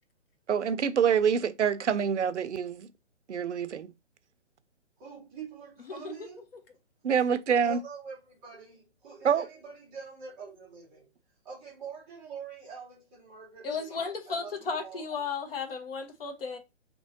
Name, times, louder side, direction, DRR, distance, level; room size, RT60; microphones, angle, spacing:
voice 1, 0.5-2.9 3.3-3.9 7.0-7.8 9.2-9.4, right 7 dB, 75° right, 0.6 m, -26 dB
voice 2, 5.0-6.5 7.6-11.1 11.4-15.0, right 6 dB, 5° right, 0.5 m, -45 dB
voice 3, 5.9-6.3 13.6-16.6, left 5 dB, 55° left, 1.1 m, -34 dB
4.4 x 3.0 x 2.7 m
figure-of-eight pair, 140°, 35 cm